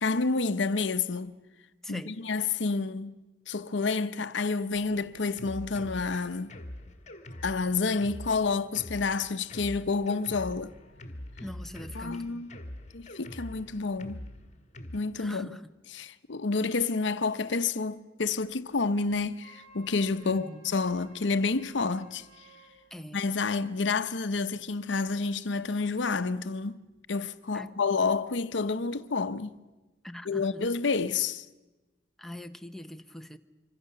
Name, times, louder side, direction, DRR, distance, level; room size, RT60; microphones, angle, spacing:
voice 1, 0.0-1.4 1.9-3.2 3.5-6.5 7.4-10.7 11.9-12.5 12.9-14.2 14.9-15.5 15.9-22.2 23.1-26.8 27.1-29.5 30.3-31.5, left 4 dB, 75° left, 0.8 m, -29 dB
voice 2, 1.8-2.2 11.4-12.4 15.2-15.7 20.2-20.6 22.9-23.2 27.5-27.8 30.0-30.5 32.2-33.4, left 1 dB, ahead, 0.8 m, -42 dB
Drum kit, 4.7-15.0, left 1 dB, 40° left, 1.7 m, -44 dB
Wind instrument woodwind instrument, 19.4-22.8, right 4 dB, 55° right, 6.6 m, -56 dB
26.0 x 24.5 x 6.7 m
head